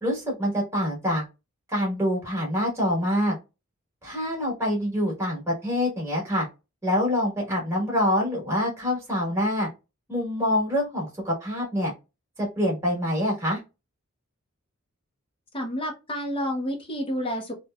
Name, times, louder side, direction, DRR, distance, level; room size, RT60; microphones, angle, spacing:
voice 1, 0.0-1.2 1.7-3.4 4.0-6.5 6.8-9.7 10.1-11.9 12.4-13.6, left 1 dB, 10° right, -2 dB, 1.2 m, -25 dB
voice 2, 15.5-17.5, equal, 25° left, 3 dB, 0.6 m, -29 dB
3.1 x 2.1 x 2.2 m, 0.26 s
head